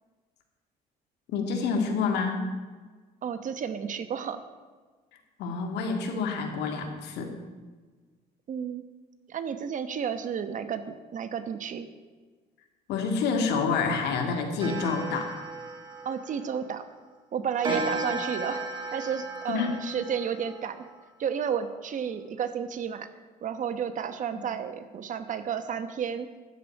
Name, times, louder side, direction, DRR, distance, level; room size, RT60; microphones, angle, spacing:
voice 1, 1.3-2.5 5.4-7.3 12.9-15.4 17.7-17.8 19.5-19.7, left 5 dB, 80° left, 3 dB, 2.1 m, -28 dB
voice 2, 3.2-4.4 8.5-8.9 9.3-11.9 16.0-16.8 17.3-18.6 18.9-20.9 21.2-23.1 23.4-26.3, right 7 dB, 50° right, 10 dB, 1.0 m, -32 dB
Clock, 14.6-16.9 17.6-21.0, right 3 dB, 30° right, 1.8 m, -35 dB
13.5 x 5.0 x 8.7 m, 1.4 s
cardioid pair, 110°, 17 cm